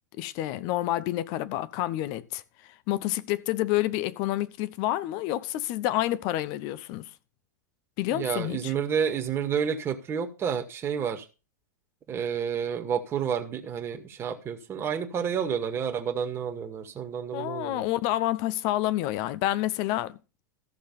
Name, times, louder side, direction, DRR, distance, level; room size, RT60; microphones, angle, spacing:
voice 1, 0.2-7.1 8.0-8.7 17.3-20.2, left 15 dB, 45° left, 1.0 m, -29 dB
voice 2, 8.1-11.3 12.1-17.8, right 7 dB, 25° right, 2.0 m, -30 dB
14.5 x 6.7 x 5.6 m
hypercardioid pair, 100°, 9 cm